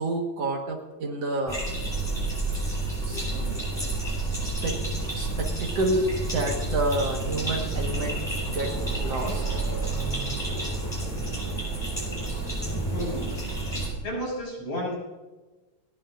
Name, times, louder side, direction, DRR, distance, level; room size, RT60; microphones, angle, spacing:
voice 1, 0.0-1.7 3.0-3.7 4.4-4.8 5.1-8.2 8.5-8.7 9.0-9.4, right 2 dB, 60° right, 1 dB, 2.3 m, -29 dB
sound 1, 1.5-13.9, right 2 dB, 10° left, 5.0 m, -29 dB
voice 2, 12.9-13.3 14.0-15.0, equal, 50° left, -3 dB, 7.1 m, -32 dB
30.0 x 10.5 x 2.5 m, 1.2 s
omnidirectional pair, 3.4 m